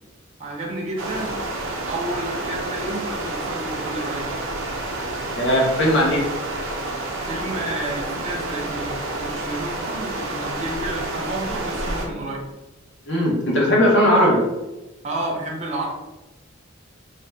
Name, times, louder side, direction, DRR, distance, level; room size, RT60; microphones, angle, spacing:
voice 1, 0.4-1.3 1.9-4.3 7.2-12.4 15.0-15.9, right 2 dB, 35° right, -2 dB, 0.6 m, -30 dB
sound 1, 1.0-12.1, right 2 dB, 75° right, 0.6 m, -29 dB
voice 2, 5.4-6.3 13.1-14.4, equal, 60° left, -3 dB, 0.9 m, -18 dB
2.6 x 2.2 x 3.3 m, 1.0 s
head